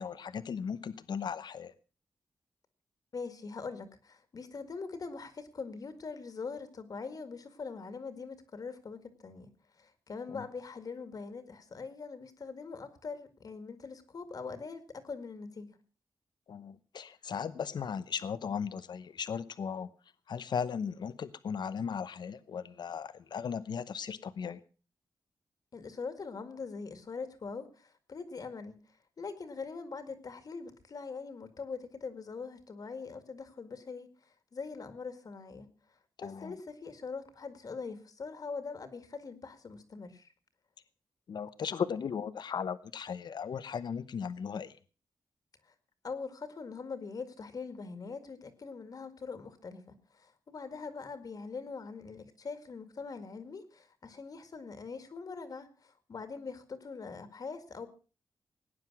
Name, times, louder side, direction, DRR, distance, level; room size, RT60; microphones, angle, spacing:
voice 1, 0.0-1.7 10.3-10.4 16.5-19.9 20.3-24.6 36.2-36.6 41.3-44.8, left 7 dB, 70° left, 14 dB, 0.9 m, -37 dB
voice 2, 3.1-9.5 9.8-15.8 25.7-28.8 29.2-35.7 36.2-40.3 45.6-45.7 46.0-57.9, left 4 dB, 50° left, 10 dB, 2.0 m, -42 dB
18.5 x 9.8 x 6.1 m, 0.37 s
wide cardioid pair, 125°, 8 cm